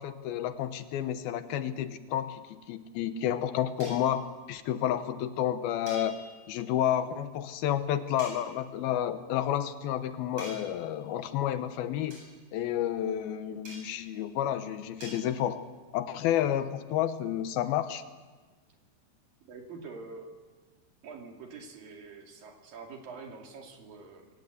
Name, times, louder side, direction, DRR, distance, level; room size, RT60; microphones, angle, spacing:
voice 1, 0.0-6.2 6.5-12.2 12.5-15.6 15.9-18.0, left 11 dB, 80° left, 11 dB, 2.8 m, -30 dB
sound 1, 3.8-4.2 5.9-6.6 8.2-8.5 10.4-10.9 12.1-12.3 13.6-14.1 15.0-15.2, right 1 dB, 40° right, 9.0 m, -46 dB
voice 2, 19.4-20.3 21.0-24.3, right 4 dB, 65° right, 2 dB, 4.3 m, -45 dB
22.5 x 18.5 x 8.0 m, 1.3 s
omnidirectional pair, 4.4 m